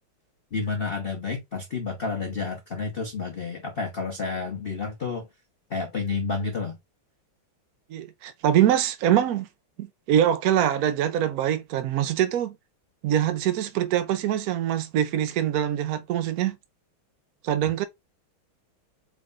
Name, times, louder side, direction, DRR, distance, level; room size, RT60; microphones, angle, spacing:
voice 1, 0.5-5.3 5.7-6.8, left 4 dB, 50° left, 0.6 m, -30 dB
voice 2, 7.9-9.5 9.8-12.5 13.0-16.6 17.4-17.8, right 11 dB, 80° right, 0.8 m, -24 dB
4.7 x 2.4 x 3.8 m
omnidirectional pair, 2.2 m